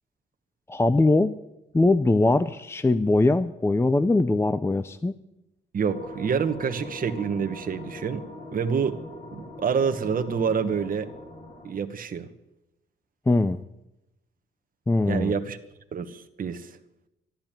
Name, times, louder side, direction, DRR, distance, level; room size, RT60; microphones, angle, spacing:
voice 1, 0.7-1.4 1.7-5.1 13.3-13.6 14.9-15.3, left 2 dB, 10° left, 13 dB, 0.6 m, -21 dB
voice 2, 5.7-8.2 8.5-9.0 9.3-11.1 11.6-12.3 15.1-15.6 15.9-16.7, right 6 dB, 45° right, 5 dB, 1.3 m, -27 dB
sound 1, 5.9-11.7, left 1 dB, 40° left, 5.8 m, -41 dB
13.0 x 12.0 x 9.0 m, 0.91 s
cardioid pair, 90°, 20 cm